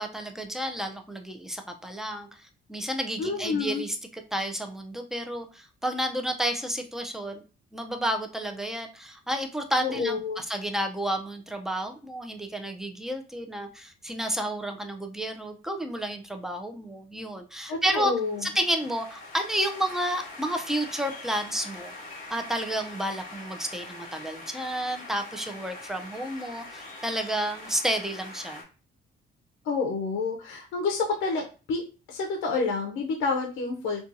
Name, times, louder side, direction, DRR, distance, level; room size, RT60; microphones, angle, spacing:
voice 1, 0.0-7.4 7.7-18.1 18.4-21.9 22.3-28.6, right 1 dB, ahead, 5 dB, 0.4 m, -31 dB
voice 2, 3.2-3.8 9.8-10.4 17.7-18.4 29.6-31.8 32.1-34.1, left 4 dB, 75° left, 2 dB, 0.5 m, -29 dB
sound 1, 17.9-28.6, left 2 dB, 45° left, 1.0 m, -43 dB
2.7 x 2.3 x 2.6 m, 0.34 s
cardioid pair, 90°, 20 cm